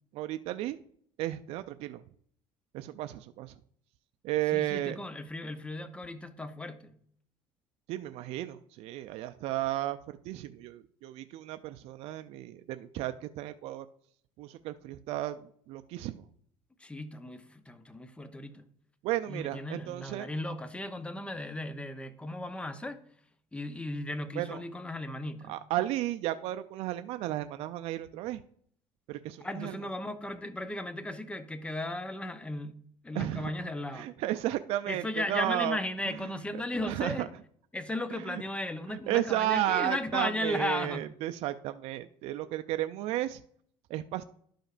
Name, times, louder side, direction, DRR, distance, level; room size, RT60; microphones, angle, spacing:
voice 1, 0.1-0.8 1.2-2.0 2.7-3.5 4.2-5.0 7.9-13.9 14.4-16.2 19.0-20.3 24.4-24.6 25.5-28.4 29.1-29.8 33.1-33.5 33.9-35.8 36.1-36.3 36.8-37.3 38.1-38.4 38.9-43.4 43.9-44.2, right 14 dB, 65° right, 0.4 m, -33 dB
voice 2, 4.5-6.9 16.8-18.6 19.3-23.0 23.5-25.5 29.4-32.8 33.0-34.1 34.9-37.3 37.7-41.1, left 2 dB, 10° left, 0.7 m, -36 dB
12.0 x 5.1 x 2.5 m
supercardioid pair, 100°, 11 cm